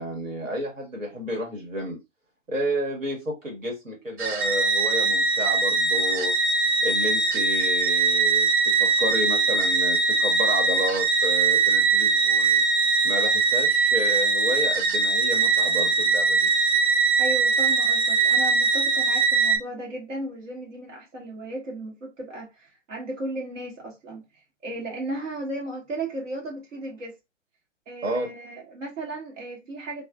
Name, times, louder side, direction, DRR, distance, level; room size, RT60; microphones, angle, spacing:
voice 1, 0.0-2.0 2.5-6.4 6.8-12.6 13.0-16.5 28.0-28.3, equal, 90° right, 1.3 m, -31 dB
sound 1, 4.2-19.6, right 4 dB, 40° right, 0.9 m, -21 dB
voice 2, 17.2-24.2 24.6-27.2 27.9-30.0, right 1 dB, 70° right, 1.2 m, -35 dB
3.3 x 2.4 x 2.3 m
figure-of-eight pair, 130°, 38 cm